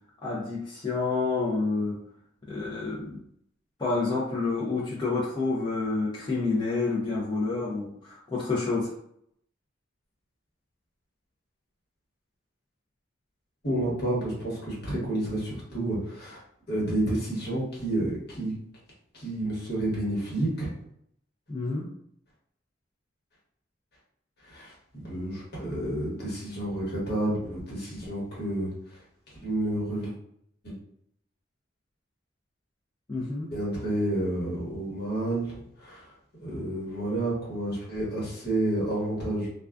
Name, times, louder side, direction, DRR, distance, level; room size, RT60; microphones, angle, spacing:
voice 1, 0.2-2.0 2.5-3.2 3.8-8.9 21.5-21.9 33.1-33.5, left 3 dB, 25° left, -7 dB, 0.5 m, -29 dB
voice 2, 13.6-16.4 16.7-18.5 19.1-20.7 24.4-28.7 29.4-30.1 30.6-30.7 33.5-36.1 36.4-39.5, right 1 dB, 60° left, -6 dB, 1.1 m, -30 dB
2.3 x 2.2 x 2.4 m, 0.71 s
head